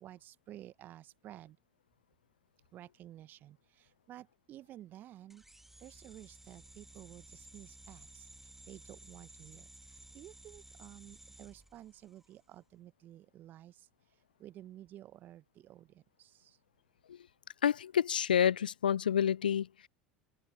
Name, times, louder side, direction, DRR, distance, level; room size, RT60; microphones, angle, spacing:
voice 1, 0.0-1.6 2.7-3.6 4.1-5.4 5.8-8.2 8.7-9.6 10.1-13.7 14.4-15.9 16.2-16.3, right 13 dB, 40° right, 0.9 m, -52 dB
sound 1, 5.3-12.4, right 1 dB, 5° right, 2.0 m, -56 dB
voice 2, 17.6-19.7, left 9 dB, 80° left, 0.4 m, -28 dB
figure-of-eight pair, 75°, 5 cm